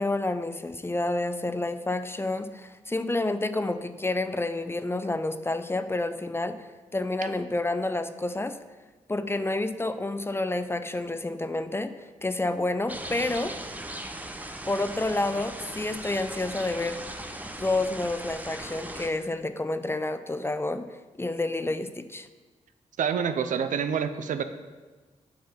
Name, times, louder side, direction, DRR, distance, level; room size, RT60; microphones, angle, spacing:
voice 1, 0.0-6.7 6.9-8.6 9.1-13.5 14.7-17.0 17.6-20.9 21.2-22.3, left 2 dB, 20° left, 10 dB, 0.5 m, -29 dB
sound 1, 12.9-19.1, right 1 dB, 10° right, 0.8 m, -38 dB
voice 2, 23.0-24.4, right 7 dB, 75° right, 10 dB, 0.5 m, -27 dB
8.7 x 3.4 x 5.7 m, 1.3 s
cardioid pair, 55°, 13 cm